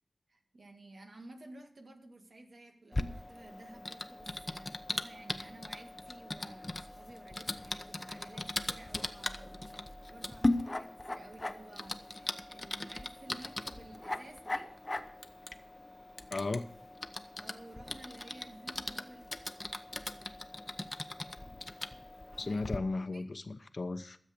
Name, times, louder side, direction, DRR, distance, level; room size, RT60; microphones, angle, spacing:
voice 1, 0.3-9.6 10.1-14.7 17.4-19.3 22.3-22.6 23.0-23.2, right 2 dB, 70° right, 2.0 m, -53 dB
Typing, 2.9-22.8, left 2 dB, 30° left, 0.9 m, -39 dB
voice 2, 16.3-16.7 22.4-24.2, left 3 dB, 60° left, 1.0 m, -35 dB
13.5 x 7.5 x 7.0 m
wide cardioid pair, 60°, 0 cm